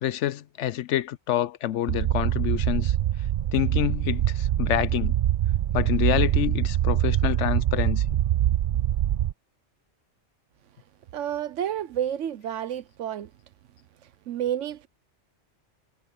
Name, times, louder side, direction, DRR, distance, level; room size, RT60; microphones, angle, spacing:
voice 1, 0.0-3.0 3.5-5.1 5.7-8.0, left 12 dB, 80° left, 1.0 m, -27 dB
sound 1, 1.9-9.3, right 12 dB, 60° right, 0.6 m, -24 dB
voice 2, 11.1-13.3 14.3-14.9, right 10 dB, 90° right, 1.1 m, -30 dB
omnidirectional pair, 1.2 m